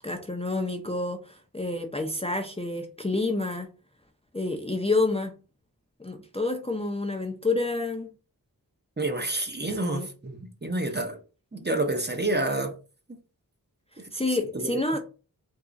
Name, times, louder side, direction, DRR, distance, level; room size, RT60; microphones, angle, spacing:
voice 1, 0.0-3.7 4.3-5.3 6.0-8.1 9.7-10.1 14.1-15.0, left 2 dB, 15° left, 0.5 m, -29 dB
voice 2, 9.0-11.2 11.5-12.7 14.5-14.7, right 2 dB, 25° right, 0.7 m, -28 dB
3.6 x 2.3 x 3.9 m
wide cardioid pair, 55°, 37 cm